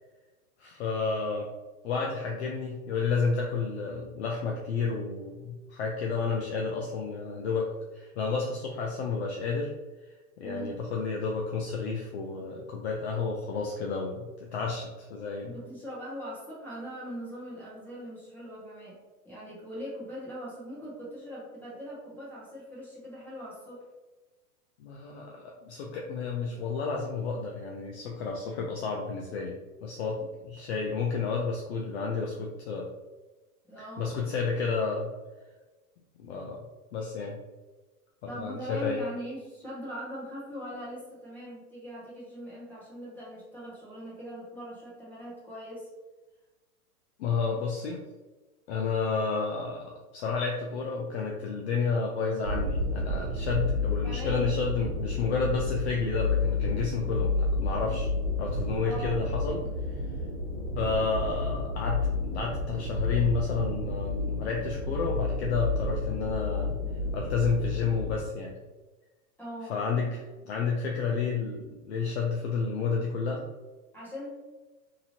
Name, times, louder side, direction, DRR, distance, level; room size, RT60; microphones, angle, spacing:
voice 1, 0.6-1.5 1.8-7.7 7.9-9.7 10.4-15.5 24.8-32.9 34.0-35.1 36.2-36.6 36.9-37.4 38.2-39.0 47.2-48.0 48.7-58.1 58.4-60.0 60.8-66.8 67.1-68.6 69.7-73.4, left 4 dB, 45° left, -1 dB, 0.5 m, -31 dB
voice 2, 10.4-10.8 15.4-19.0 19.2-23.9 33.7-34.4 38.3-45.9 54.0-54.6 58.8-59.2 69.4-69.8 73.9-74.3, equal, 5° left, -8 dB, 0.8 m, -41 dB
sound 1, 52.4-68.2, left 3 dB, 35° right, 1.1 m, -30 dB
2.9 x 2.6 x 2.8 m, 1.2 s
hypercardioid pair, 125°, 47 cm